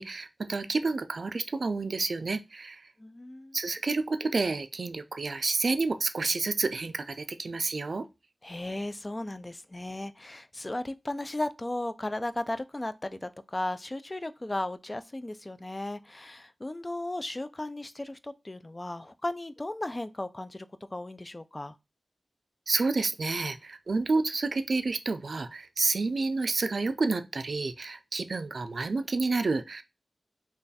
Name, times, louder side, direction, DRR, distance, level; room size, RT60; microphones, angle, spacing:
voice 1, 0.0-2.9 3.5-8.1 22.7-29.8, right 3 dB, 70° right, 0.3 m, -29 dB
voice 2, 3.0-3.6 8.4-21.7, left 1 dB, 30° left, 0.3 m, -35 dB
3.2 x 2.3 x 4.0 m
cardioid pair, 45°, 0 cm